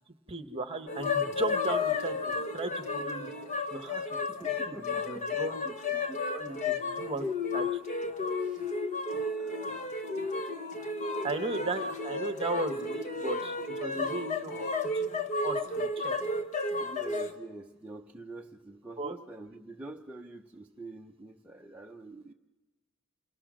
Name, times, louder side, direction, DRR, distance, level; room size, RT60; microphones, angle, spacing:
voice 1, 0.3-3.3 3.7-4.2 4.7-7.2 7.5-7.7 11.2-14.7 14.9-15.1 15.4-16.1 19.0-19.2, right 2 dB, 25° right, 8 dB, 1.3 m, -36 dB
sound 1, 0.9-17.3, left 3 dB, 35° left, 1.3 m, -32 dB
voice 2, 4.3-5.4 8.4-8.7 9.4-9.9 11.6-11.8 16.8-22.3, right 2 dB, 5° right, -2 dB, 0.7 m, -46 dB
28.0 x 20.5 x 6.3 m, 1.2 s
head